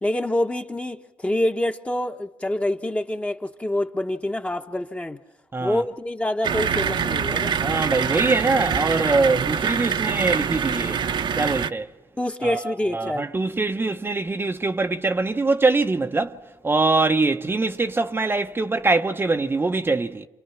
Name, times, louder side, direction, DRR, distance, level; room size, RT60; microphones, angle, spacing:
voice 1, 0.0-5.2 5.6-7.5 12.2-13.3, left 1 dB, 15° left, 1.2 m, -26 dB
sound 1, 6.4-11.7, right 7 dB, 55° right, 1.0 m, -25 dB
voice 2, 7.6-11.0 11.4-11.9 12.4-16.4 16.6-20.3, right 3 dB, 25° right, 0.8 m, -23 dB
29.0 x 27.5 x 5.9 m
cardioid pair, 85°, 9 cm